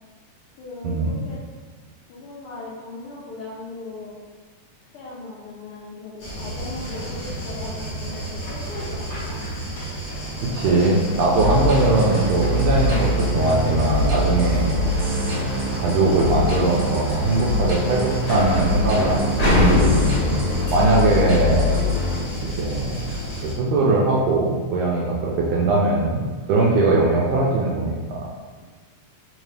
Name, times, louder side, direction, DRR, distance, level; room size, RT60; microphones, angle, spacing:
voice 1, 0.6-1.4 2.1-4.2 4.9-9.4 26.5-26.8, left 2 dB, 90° left, -7 dB, 1.2 m, -37 dB
sound 1, 6.2-23.5, equal, 65° left, 0.9 m, -28 dB
voice 2, 10.4-14.7 15.7-20.4 20.7-21.8 22.4-23.1 23.4-28.3, right 2 dB, 80° right, -3 dB, 1.5 m, -21 dB
sound 2, 11.3-22.2, left 2 dB, 60° right, 1.5 m, -24 dB
4.4 x 2.7 x 3.2 m, 1.4 s
omnidirectional pair, 3.3 m